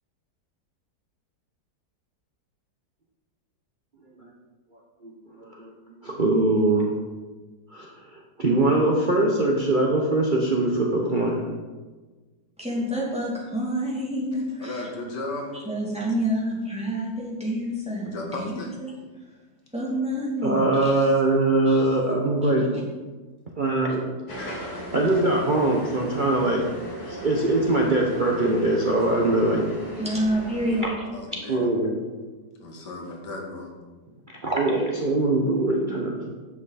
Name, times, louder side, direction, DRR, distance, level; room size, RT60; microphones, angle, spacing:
voice 1, 5.4-5.7 6.0-6.9 7.7-7.9 8.4-11.4 20.4-22.7 23.6-24.0 24.9-26.6 27.0-29.6 31.5-32.0 34.4-36.3, right 2 dB, 35° right, -2 dB, 0.9 m, -22 dB
voice 2, 12.6-14.8 15.7-18.9 19.7-20.9 21.7-21.8 30.0-30.9, equal, 5° right, -5 dB, 2.7 m, -28 dB
voice 3, 14.6-15.6 18.0-18.7 31.1-31.7 32.6-33.7, left 2 dB, 80° left, 0 dB, 2.1 m, -35 dB
sound 1, 24.3-30.9, equal, 65° left, 2.2 m, -37 dB
10.0 x 7.9 x 4.1 m, 1.3 s
omnidirectional pair, 1.8 m